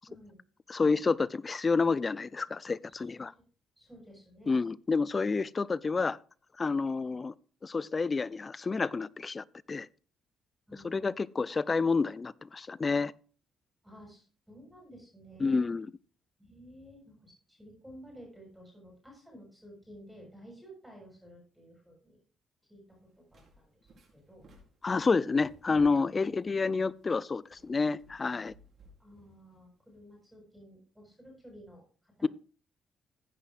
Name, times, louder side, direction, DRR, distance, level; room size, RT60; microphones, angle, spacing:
voice 1, 0.1-0.4 2.9-3.3 3.8-4.6 10.7-11.2 13.8-15.7 16.4-22.2 22.7-24.5 25.3-25.5 29.0-32.3, equal, 5° right, 6.9 m, -53 dB
voice 2, 0.7-3.3 4.5-6.2 6.6-7.3 7.6-9.9 10.7-13.1 15.4-15.9 24.8-28.5 32.2-32.3, left 4 dB, 30° left, 0.5 m, -29 dB
sound 1, 22.9-30.3, equal, 55° right, 4.6 m, -61 dB
15.0 x 9.8 x 2.5 m
cardioid pair, 90°, 0 cm